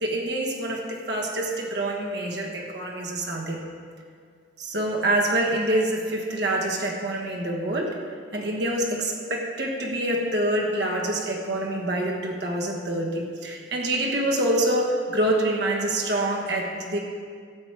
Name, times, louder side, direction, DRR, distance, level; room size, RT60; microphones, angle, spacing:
voice 1, 0.0-3.6 4.6-8.0 8.3-17.0, right 1 dB, 60° right, 0 dB, 1.3 m, -26 dB
13.5 x 8.0 x 4.8 m, 2.1 s
head